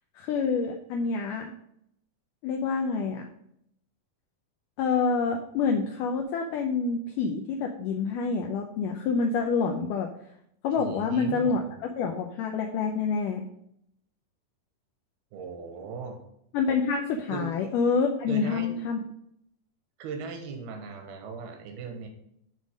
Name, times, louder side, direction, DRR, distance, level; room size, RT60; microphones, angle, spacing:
voice 1, 0.2-1.5 2.4-3.3 4.8-10.1 10.6-13.5 16.5-19.0, left 5 dB, 80° left, 3 dB, 2.0 m, -27 dB
voice 2, 10.8-11.7 15.3-16.2 17.3-17.5 18.3-18.8 20.0-22.1, right 5 dB, 90° right, 4 dB, 3.1 m, -38 dB
11.0 x 3.7 x 5.1 m, 0.74 s
omnidirectional pair, 4.4 m